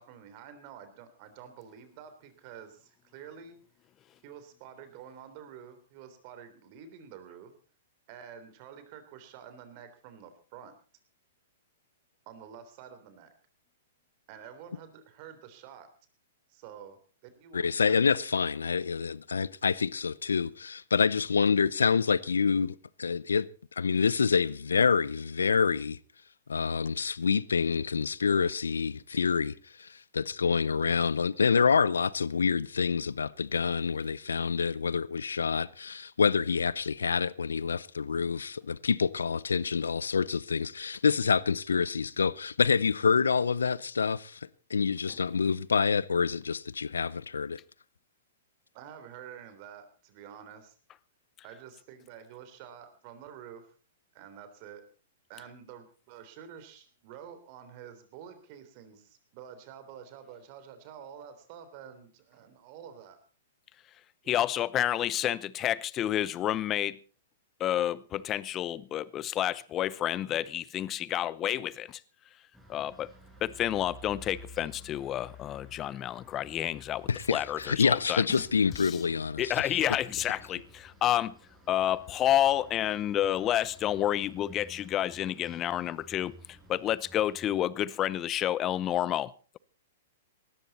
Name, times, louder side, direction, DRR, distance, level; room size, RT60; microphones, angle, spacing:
voice 1, 0.0-3.6 4.2-7.5 8.1-10.7 12.2-13.3 14.3-15.9 16.5-17.0 17.4-18.7 48.7-50.7 51.4-53.7 54.1-54.8 55.3-63.2 64.2-64.5, right 8 dB, 45° right, 3.4 m, -49 dB
voice 2, 17.5-23.5 23.8-26.0 26.5-29.5 29.8-47.6 77.1-79.5, left 5 dB, 85° left, 0.6 m, -27 dB
voice 3, 64.3-67.0 67.6-72.0 72.7-73.1 73.4-78.2 78.8-79.0 79.4-81.4 81.7-86.3 86.7-89.6, left 12 dB, 30° left, 0.7 m, -29 dB
sound 1, 72.5-87.6, left 1 dB, 5° right, 6.2 m, -52 dB
18.5 x 14.0 x 4.2 m
hypercardioid pair, 120°, 0 cm